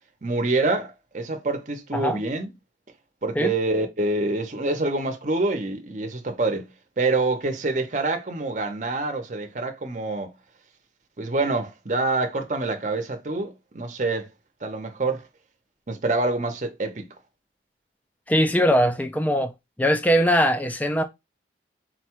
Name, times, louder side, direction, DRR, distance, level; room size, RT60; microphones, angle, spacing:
voice 1, 0.2-2.5 3.2-6.7 7.0-10.3 11.2-14.3 14.6-15.3 15.9-17.1, right 2 dB, 45° right, 0.7 m, -26 dB
voice 2, 18.3-19.5 19.8-21.0, equal, 10° left, 0.4 m, -21 dB
4.0 x 2.3 x 4.5 m
head